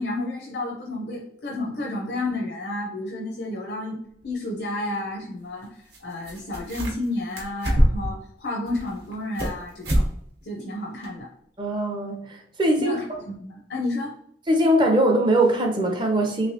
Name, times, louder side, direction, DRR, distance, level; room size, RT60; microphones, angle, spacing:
voice 1, 0.0-4.0 4.2-5.7 6.0-10.0 10.4-11.3 12.8-14.1, left 2 dB, 65° left, -2 dB, 0.5 m, -31 dB
sound 1, 4.2-4.3 5.9-6.0 6.2-7.1 7.4-8.2 8.7-9.6 9.8-10.1 10.4-10.5 11.0-11.1, equal, 65° right, 0.9 m, -23 dB
voice 2, 11.6-13.0 14.5-16.5, right 1 dB, 25° right, 3 dB, 0.5 m, -21 dB
3.1 x 3.1 x 2.7 m, 0.70 s
head